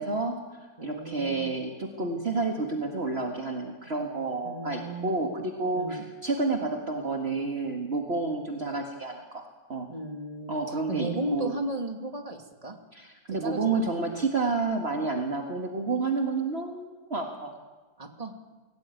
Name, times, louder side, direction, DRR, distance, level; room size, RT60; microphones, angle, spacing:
voice 1, 0.0-9.4 9.7-9.9 10.5-11.6 12.9-17.5, right 3 dB, 40° right, 1 dB, 2.1 m, -30 dB
voice 2, 0.8-1.5 4.4-5.2 5.8-6.1 9.9-10.6 10.9-12.8 13.4-13.8 18.0-18.3, right 1 dB, 20° right, 3 dB, 2.6 m, -35 dB
25.5 x 17.5 x 9.2 m, 1.3 s
omnidirectional pair, 1.7 m